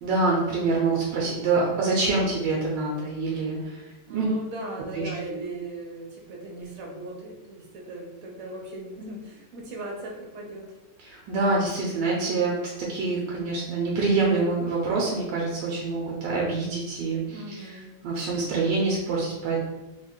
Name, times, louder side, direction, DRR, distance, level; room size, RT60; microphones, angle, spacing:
voice 1, 0.0-3.8 4.1-4.3 4.9-5.4 11.0-17.4 18.0-19.6, right 3 dB, 85° right, -3 dB, 1.3 m, -26 dB
voice 2, 4.1-10.8 17.2-18.1, right 1 dB, 60° right, -1 dB, 0.7 m, -38 dB
3.2 x 2.4 x 3.6 m, 1.0 s
omnidirectional pair, 1.9 m